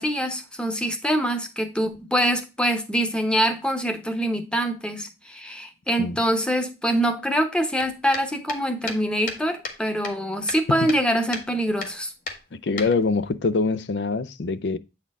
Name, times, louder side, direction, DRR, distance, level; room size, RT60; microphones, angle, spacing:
voice 1, 0.0-12.1, equal, 5° left, 0.9 m, -24 dB
sound 1, 7.8-9.8 10.0-11.1 11.3-11.5 11.8-12.0 12.3-13.3, left 3 dB, 50° left, 1.2 m, -34 dB
voice 2, 12.6-14.8, left 4 dB, 75° left, 0.5 m, -24 dB
8.1 x 4.4 x 3.5 m
head